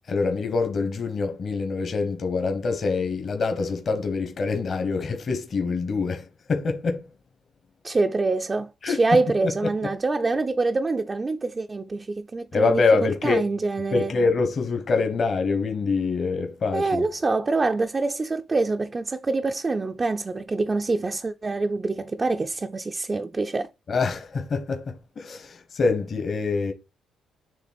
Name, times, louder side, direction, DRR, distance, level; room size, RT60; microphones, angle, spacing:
voice 1, 0.1-7.0 8.8-9.0 12.5-13.5 13.9-17.1 23.9-26.7, left 4 dB, 45° left, 1.3 m, -25 dB
voice 2, 7.8-14.1 16.7-23.7, right 3 dB, 25° right, 0.5 m, -25 dB
7.2 x 3.3 x 4.3 m
cardioid pair, 90°, 0 cm